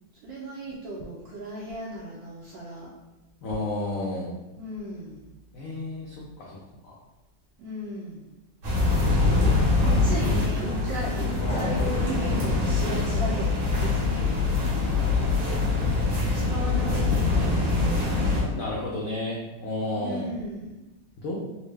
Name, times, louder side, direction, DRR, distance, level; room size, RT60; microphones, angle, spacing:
voice 1, 0.2-2.9 4.6-5.3 7.6-8.2 9.8-14.4 16.3-17.8 20.0-20.9, right 1 dB, 75° right, -4 dB, 1.2 m, -36 dB
voice 2, 3.4-4.3 5.5-6.9 9.2-10.2 11.4-11.9 18.5-20.3 21.2-21.5, left 2 dB, 85° left, -4 dB, 0.7 m, -32 dB
sound 1, 8.6-18.4, left 3 dB, 90° right, 2.0 m, -24 dB
4.3 x 2.1 x 3.2 m, 1.0 s
omnidirectional pair, 2.2 m